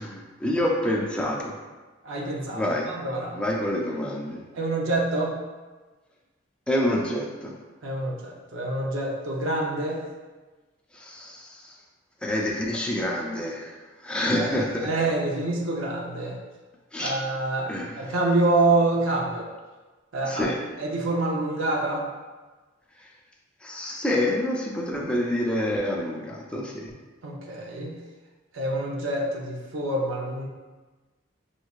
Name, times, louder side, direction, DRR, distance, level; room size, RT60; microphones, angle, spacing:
voice 1, 0.0-1.5 2.5-2.9 3.3-4.4 6.7-7.6 10.9-11.8 12.2-13.8 14.0-14.9 16.9-17.1 17.7-18.1 20.2-20.6 23.0-23.1 23.6-27.0, left 1 dB, 5° left, -2 dB, 0.4 m, -27 dB
voice 2, 2.0-2.6 2.9-3.3 4.5-5.4 7.8-10.0 14.2-16.4 17.0-17.7 18.0-19.5 20.1-20.5 20.8-22.1 27.2-28.0 28.5-30.5, right 2 dB, 85° right, -2 dB, 0.7 m, -26 dB
5.4 x 3.1 x 2.4 m, 1.3 s
head